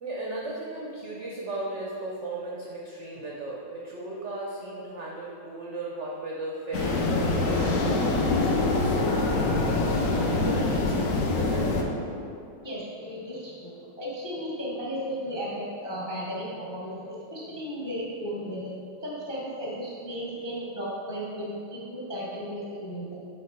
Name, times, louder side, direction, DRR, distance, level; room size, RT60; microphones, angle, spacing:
voice 1, 0.0-12.1, right 2 dB, 75° right, -4 dB, 0.6 m, -37 dB
sound 1, 6.2-12.8, equal, 55° left, 1.3 m, -43 dB
sound 2, 6.7-11.8, left 2 dB, 70° left, 0.7 m, -25 dB
voice 2, 12.6-23.2, equal, 30° left, -5 dB, 0.4 m, -35 dB
6.5 x 3.5 x 4.5 m, 2.5 s
omnidirectional pair, 2.1 m